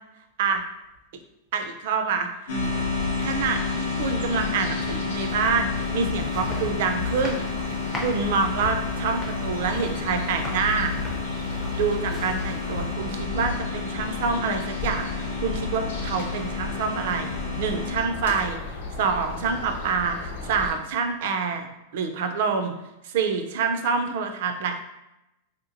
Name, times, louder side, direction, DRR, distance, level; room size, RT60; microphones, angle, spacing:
voice 1, 1.5-2.3 2.6-2.7 3.2-10.9 11.7-17.3 17.6-18.6 19.0-21.7 21.9-22.7 23.0-24.8, right 5 dB, 55° right, 6 dB, 0.4 m, -27 dB
sound 1, 2.5-20.7, left 3 dB, 85° left, 0.7 m, -34 dB
sound 2, 2.5-18.0, left 4 dB, 50° left, 0.6 m, -31 dB
sound 3, 5.5-13.2, left 1 dB, 5° left, 0.5 m, -40 dB
3.3 x 2.8 x 2.5 m, 0.91 s
supercardioid pair, 175°, 0 cm